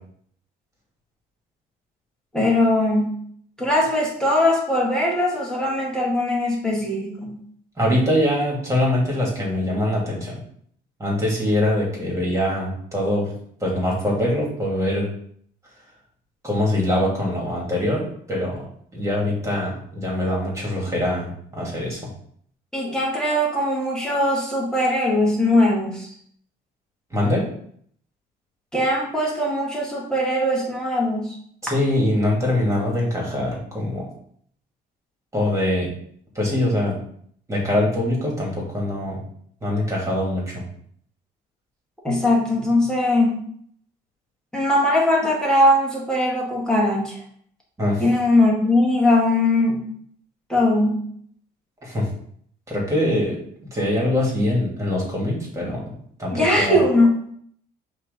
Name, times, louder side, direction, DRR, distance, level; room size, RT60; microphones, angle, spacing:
voice 1, 2.3-3.2 3.6-7.4 22.7-26.1 28.7-31.3 42.0-43.4 44.5-47.2 48.0-49.8 50.5-51.1 56.3-57.2, left 1 dB, 5° left, -4 dB, 1.9 m, -20 dB
voice 2, 7.8-10.4 11.0-13.3 13.6-15.1 16.4-18.6 18.9-22.0 27.1-27.5 31.6-34.1 35.3-35.9 36.3-37.0 37.5-39.2 39.6-40.6 47.8-48.0 51.8-52.1 52.7-53.4 53.7-55.8 56.2-56.8, left 1 dB, 15° right, -3 dB, 2.7 m, -23 dB
5.6 x 3.2 x 5.3 m, 0.63 s
cardioid pair, 110°, 17 cm